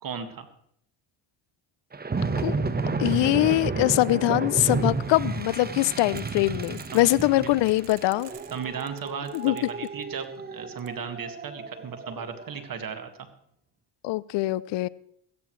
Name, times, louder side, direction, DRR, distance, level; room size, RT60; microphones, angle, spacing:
voice 1, 0.0-0.5 6.9-7.1 7.3-7.5 8.5-13.1, right 6 dB, 45° right, 8 dB, 1.9 m, -36 dB
sound 1, 1.9-12.5, right 4 dB, 20° right, 1.1 m, -31 dB
voice 2, 3.0-8.3 9.3-9.6 14.0-14.9, left 18 dB, 65° left, 21 dB, 0.6 m, -23 dB
sound 2, 6.0-7.3 7.7-10.3 10.8-10.9, right 12 dB, 60° right, 1.1 m, -49 dB
15.5 x 14.0 x 3.2 m, 0.69 s
supercardioid pair, 85°, 47 cm